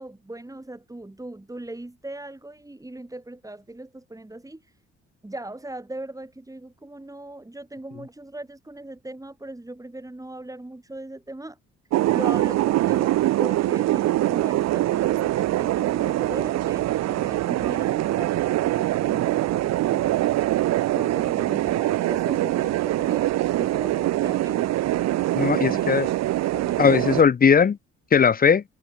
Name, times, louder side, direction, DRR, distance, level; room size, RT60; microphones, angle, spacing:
voice 1, 0.0-4.6 5.2-11.6 12.1-20.3 20.9-23.3 23.6-24.8 25.4-26.2 26.5-27.1, right 1 dB, 10° right, 6.3 m, -39 dB
sound 1, 11.9-27.2, right 15 dB, 60° right, 0.5 m, -23 dB
voice 2, 25.4-26.1 26.8-27.8 28.1-28.6, left 6 dB, 30° left, 0.7 m, -18 dB
cardioid pair, 90°, 30 cm